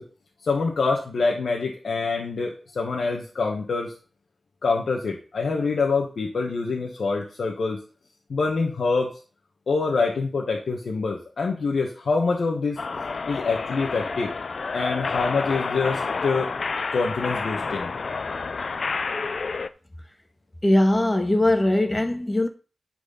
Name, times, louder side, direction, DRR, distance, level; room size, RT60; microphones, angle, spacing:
voice 1, 0.4-3.9 4.6-7.8 8.3-9.1 9.7-12.8 13.3-14.3 14.7-16.5 16.9-17.9, left 4 dB, 85° left, 1.6 m, -25 dB
sound 1, 12.8-19.7, left 4 dB, 65° left, 0.6 m, -29 dB
voice 2, 20.6-22.5, left 1 dB, 20° left, 1.6 m, -20 dB
10.5 x 4.7 x 5.8 m
wide cardioid pair, 70°, 0 cm